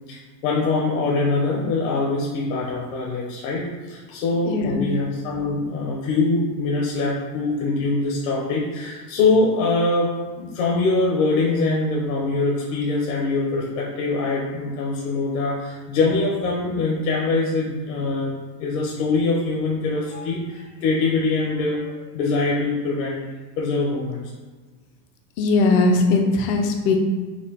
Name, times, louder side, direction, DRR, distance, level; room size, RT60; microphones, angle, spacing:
voice 1, 0.1-23.2 23.6-24.3, left 3 dB, 55° left, -3 dB, 0.8 m, -23 dB
voice 2, 4.4-4.9 25.4-27.0, left 3 dB, 35° left, 3 dB, 0.4 m, -19 dB
4.3 x 2.6 x 4.2 m, 1.3 s
supercardioid pair, 145°, 48 cm